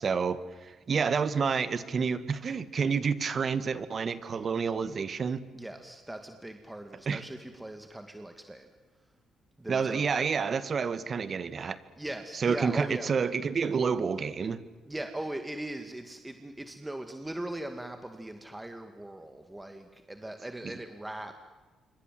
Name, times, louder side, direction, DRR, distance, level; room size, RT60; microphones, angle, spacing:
voice 1, 0.0-5.4 7.1-7.2 9.7-11.8 12.4-14.6, right 5 dB, 45° right, 14 dB, 1.7 m, -29 dB
voice 2, 5.5-8.7 9.6-10.1 12.0-13.1 14.9-21.4, right 1 dB, 10° right, 7 dB, 2.2 m, -39 dB
27.5 x 24.5 x 7.7 m, 1.3 s
cardioid pair, 90°, 0 cm